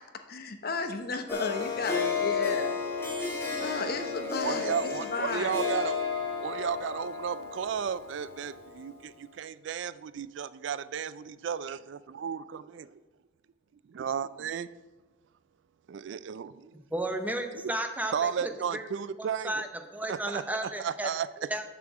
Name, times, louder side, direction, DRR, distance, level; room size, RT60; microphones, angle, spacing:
voice 1, 0.1-3.0 3.6-5.6, left 4 dB, 50° left, 7 dB, 0.9 m, -34 dB
Harp, 1.3-8.8, left 5 dB, 15° left, 2.6 m, -32 dB
voice 2, 4.4-6.0 6.4-13.0 13.9-14.7 15.9-16.8 18.1-19.7 20.0-21.5, right 7 dB, 65° right, 16 dB, 0.3 m, -34 dB
voice 3, 16.9-18.8 19.4-19.7 19.9-21.1 21.5-21.6, right 1 dB, 10° right, 6 dB, 0.9 m, -33 dB
7.1 x 6.7 x 7.1 m, 1.1 s
head